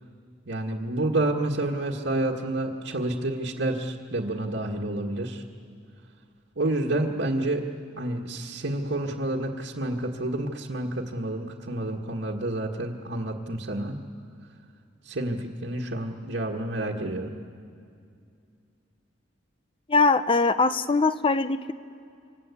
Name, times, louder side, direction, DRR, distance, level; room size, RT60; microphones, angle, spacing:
voice 1, 0.5-5.4 6.5-7.6 8.0-14.0 15.0-17.4, right 1 dB, 70° right, -3 dB, 1.6 m, -29 dB
voice 2, 19.9-21.7, left 3 dB, 30° left, 12 dB, 0.6 m, -22 dB
28.0 x 25.0 x 8.4 m, 2.4 s
head